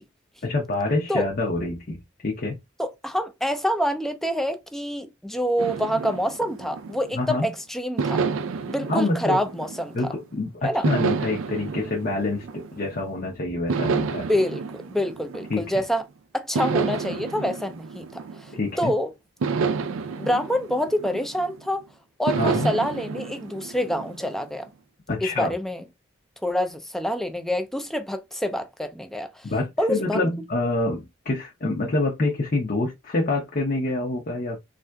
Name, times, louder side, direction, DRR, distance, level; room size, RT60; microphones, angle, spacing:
voice 1, 0.4-2.6 7.1-7.5 8.9-9.4 9.9-14.3 15.5-15.7 18.5-18.9 22.4-22.7 25.1-25.6 29.4-34.6, left 2 dB, 45° left, 0.6 m, -26 dB
voice 2, 2.8-8.2 8.7-10.0 10.6-10.8 14.3-14.6 14.9-16.0 16.3-18.5 18.8-19.1 20.2-21.9 22.2-24.7 25.2-25.8 26.4-29.4 29.8-30.2, equal, ahead, 0.3 m, -26 dB
sound 1, 5.6-7.4 8.0-10.2 10.8-13.1 13.7-15.9 16.5-18.8 19.4-21.7 22.3-24.5, right 5 dB, 90° right, 0.4 m, -30 dB
3.5 x 2.5 x 2.2 m
head